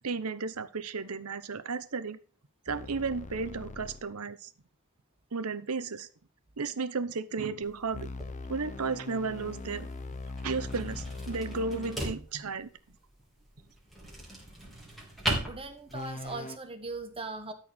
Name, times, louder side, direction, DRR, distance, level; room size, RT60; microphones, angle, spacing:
voice 1, 0.0-2.2 2.7-4.5 5.3-6.1 6.6-8.1 8.5-9.9 10.4-12.7, right 4 dB, 80° right, 13 dB, 0.9 m, -34 dB
sound 1, 2.7-4.1 7.9-12.1 15.9-16.6, left 2 dB, 35° left, 0.7 m, -41 dB
sound 2, 7.6-16.3, right 1 dB, ahead, 3.4 m, -39 dB
voice 2, 15.4-17.5, right 3 dB, 25° right, 7 dB, 1.4 m, -39 dB
13.0 x 4.6 x 5.5 m, 0.40 s
head